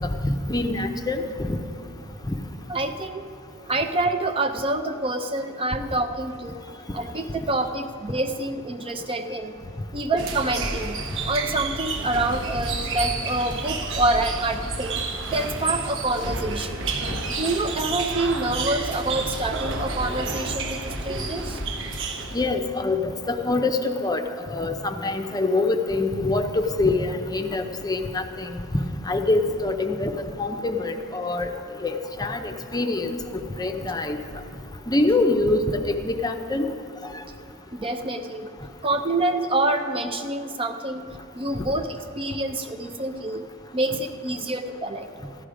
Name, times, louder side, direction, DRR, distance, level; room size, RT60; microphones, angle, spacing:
voice 1, 0.0-1.6 2.3-2.4 22.3-24.2 24.5-28.6 29.1-31.5 31.8-34.2 34.9-36.7 37.1-37.2, left 2 dB, 15° left, 6 dB, 0.6 m, -25 dB
voice 2, 2.7-3.3 3.7-6.6 6.9-9.6 9.9-11.0 11.2-15.0 15.3-16.9 17.4-21.6 37.7-38.5 38.8-41.0 41.3-43.4 43.7-45.1, right 2 dB, 25° right, 7 dB, 0.5 m, -27 dB
sound 1, 10.2-22.6, right 3 dB, 60° right, 1.0 m, -30 dB
14.5 x 11.5 x 5.0 m, 2.5 s
head